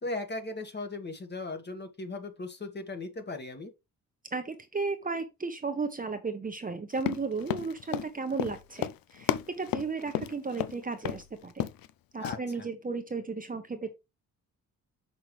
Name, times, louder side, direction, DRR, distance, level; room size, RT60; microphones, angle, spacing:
voice 1, 0.0-3.7 12.2-12.4, left 2 dB, 30° left, 1.6 m, -37 dB
voice 2, 4.3-11.7 12.1-13.9, right 4 dB, 25° right, 1.0 m, -34 dB
Run, 7.0-10.7 11.1-11.2 11.5-11.9 12.2-12.4, left 12 dB, 85° left, 0.6 m, -32 dB
6.1 x 5.9 x 3.2 m
cardioid pair, 100°, 34 cm